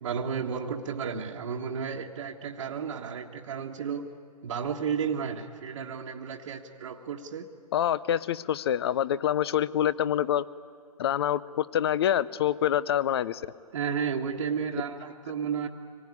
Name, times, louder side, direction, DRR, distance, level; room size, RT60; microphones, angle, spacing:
voice 1, 0.0-4.1 4.4-7.5 13.7-15.7, right 6 dB, 50° right, -1 dB, 1.3 m, -32 dB
voice 2, 7.7-10.5 11.0-13.4, left 10 dB, 40° left, 18 dB, 0.6 m, -26 dB
25.0 x 18.5 x 9.6 m, 2.3 s
hypercardioid pair, 145°, 20 cm